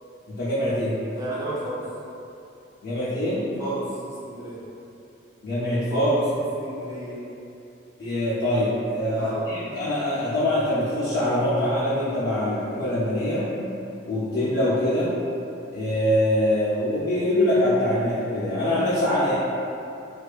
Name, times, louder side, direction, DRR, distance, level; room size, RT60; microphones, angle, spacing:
voice 1, 0.3-1.0 2.8-3.5 5.4-6.1 8.0-13.5 14.0-15.2 15.7-19.3, left 1 dB, 55° left, -11 dB, 0.4 m, -24 dB
voice 2, 1.1-1.9 3.6-4.6 5.9-6.2 6.6-7.2 9.1-9.5, right 2 dB, 20° right, -9 dB, 0.5 m, -32 dB
2.5 x 2.2 x 2.3 m, 2.7 s
head